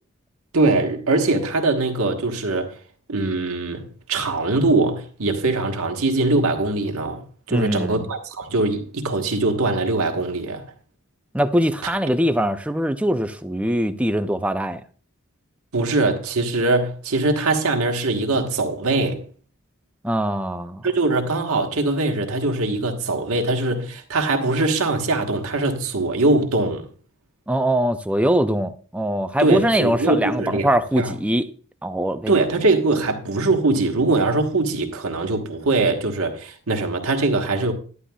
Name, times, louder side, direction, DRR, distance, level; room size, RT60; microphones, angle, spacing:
voice 1, 0.5-2.8 3.1-7.2 7.5-10.6 11.8-11.9 15.7-19.2 20.8-26.9 29.4-30.7 31.0-31.1 32.3-37.7, right 2 dB, 90° right, 1.3 m, -22 dB
voice 2, 7.5-8.0 11.3-14.8 20.0-20.8 27.5-31.5 31.8-32.3, equal, 5° right, 0.4 m, -22 dB
11.0 x 9.8 x 2.3 m
head